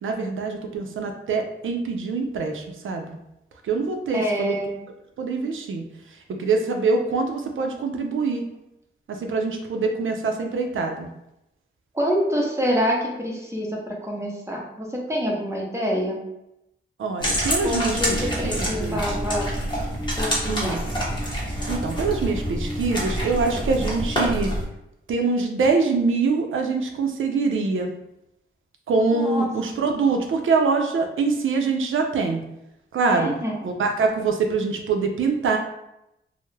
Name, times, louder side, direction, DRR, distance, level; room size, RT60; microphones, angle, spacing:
voice 1, 0.0-3.2 3.6-4.6 5.2-5.8 6.4-8.5 9.1-11.1 17.0-19.2 20.5-20.8 21.7-24.5 25.1-27.9 28.9-32.4 32.9-33.3 33.6-35.6, right 4 dB, 75° right, 4 dB, 0.4 m, -24 dB
voice 2, 4.1-4.8 11.9-16.2 17.6-19.5 20.2-20.8 29.1-29.5 33.1-33.6, equal, 15° right, -1 dB, 0.6 m, -26 dB
sound 1, 17.2-24.6, equal, 20° left, 0.8 m, -27 dB
2.2 x 2.0 x 3.1 m, 0.85 s
cardioid pair, 65°, 21 cm